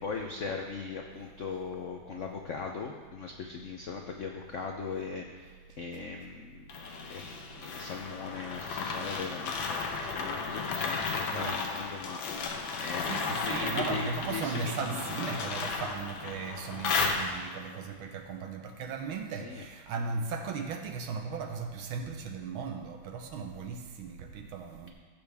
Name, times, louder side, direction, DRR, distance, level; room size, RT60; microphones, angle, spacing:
voice 1, 0.0-6.7 7.1-7.2 7.6-15.0 19.4-19.6, left 5 dB, 90° left, 2 dB, 0.6 m, -39 dB
sound 1, 6.7-17.7, left 4 dB, 70° left, 1.6 m, -34 dB
voice 2, 11.3-12.2 13.0-24.9, right 5 dB, 80° right, 4 dB, 1.8 m, -37 dB
15.5 x 7.0 x 3.5 m, 1.5 s
omnidirectional pair, 2.3 m